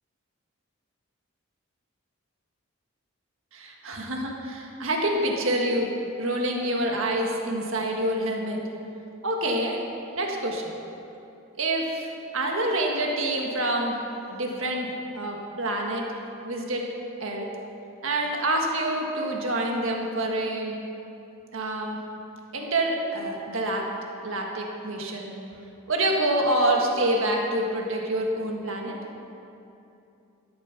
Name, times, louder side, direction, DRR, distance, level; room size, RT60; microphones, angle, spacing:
voice 1, 3.5-5.9 6.2-8.6 9.2-9.8 10.1-10.7 11.6-14.0 14.3-16.0 16.4-16.9 17.2-17.5 18.0-20.8 21.5-22.0 22.5-23.9 24.2-25.3 25.9-29.0, right 1 dB, 65° right, 0 dB, 1.7 m, -27 dB
13.0 x 9.1 x 6.0 m, 2.8 s
head